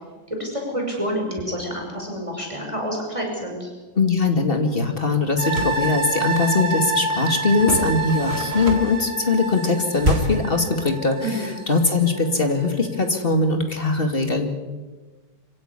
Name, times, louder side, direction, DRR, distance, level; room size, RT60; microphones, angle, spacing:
voice 1, 0.3-3.7 11.2-11.5, equal, 15° right, 0 dB, 6.0 m, -28 dB
voice 2, 4.0-14.5, left 3 dB, 30° left, 5 dB, 2.4 m, -21 dB
sound 1, 5.3-5.8 7.6-9.1 10.0-10.5, right 1 dB, 30° right, 2.9 m, -26 dB
sound 2, 5.4-12.7 13.1-13.2, right 2 dB, 60° right, 6.9 m, -28 dB
25.5 x 16.5 x 9.8 m, 1.3 s
omnidirectional pair, 2.1 m